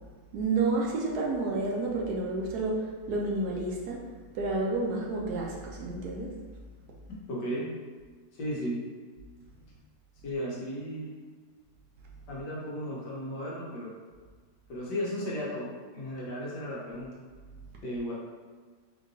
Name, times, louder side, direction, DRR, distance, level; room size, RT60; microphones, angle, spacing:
voice 1, 0.3-4.0 4.3-6.3, right 3 dB, 70° right, -2 dB, 1.0 m, -30 dB
voice 2, 7.1-7.7 8.4-8.8 10.2-11.1 12.3-13.9 14.7-17.1 17.8-18.1, equal, 70° left, -5 dB, 1.5 m, -35 dB
4.5 x 2.9 x 2.6 m, 1.5 s
omnidirectional pair, 1.9 m